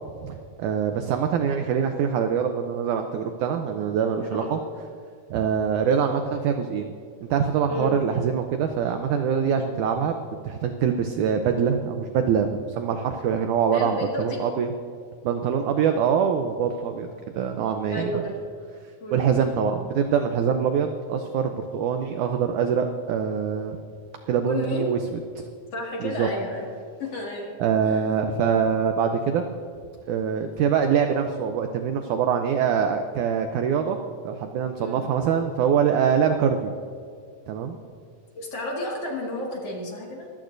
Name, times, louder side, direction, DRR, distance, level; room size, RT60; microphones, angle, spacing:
voice 1, 0.2-4.6 5.3-6.9 7.2-10.2 10.4-14.7 15.2-17.1 17.3-18.1 19.1-23.8 24.3-25.0 25.4-25.5 26.0-26.3 27.6-29.4 30.1-34.0 34.3-36.7 37.5-37.8, right 7 dB, 80° right, 6 dB, 1.8 m, -24 dB
voice 2, 13.7-14.4 17.9-18.4 19.0-19.3 24.5-24.9 25.7-26.7 27.0-27.6 27.8-28.0 34.8-35.0 38.4-40.3, left 1 dB, 45° left, -2 dB, 2.7 m, -31 dB
25.0 x 15.0 x 2.6 m, 2.2 s
omnidirectional pair, 4.3 m